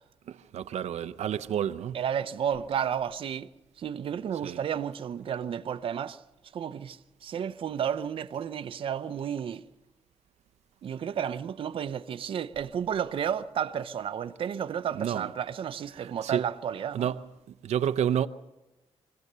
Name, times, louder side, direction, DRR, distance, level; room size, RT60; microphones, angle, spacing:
voice 1, 0.3-2.0 4.4-4.6 14.9-15.3 15.9-16.4 16.9-17.3 17.6-18.3, right 9 dB, 90° right, 0.7 m, -30 dB
voice 2, 1.9-3.5 3.8-6.2 6.5-9.6 10.8-17.1, right 8 dB, 55° right, 0.6 m, -32 dB
24.5 x 16.0 x 6.8 m
wide cardioid pair, 175°, 11 cm